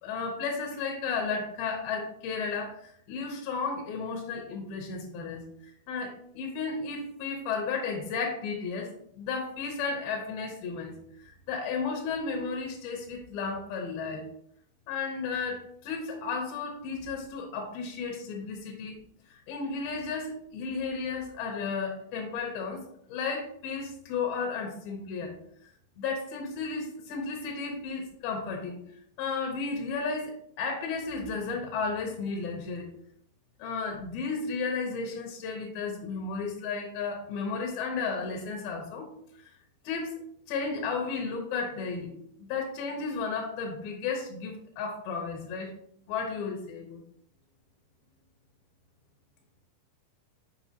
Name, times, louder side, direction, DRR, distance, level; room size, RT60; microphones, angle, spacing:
voice 1, 0.0-5.4 5.9-10.9 11.2-14.3 14.9-19.0 19.3-22.8 23.1-25.3 26.0-28.8 29.2-32.9 33.6-39.1 39.4-39.5 39.8-40.1 40.5-45.7 46.1-47.0, left 4 dB, 80° left, 1 dB, 2.2 m, -33 dB
7.0 x 4.8 x 2.8 m, 0.68 s
omnidirectional pair, 5.3 m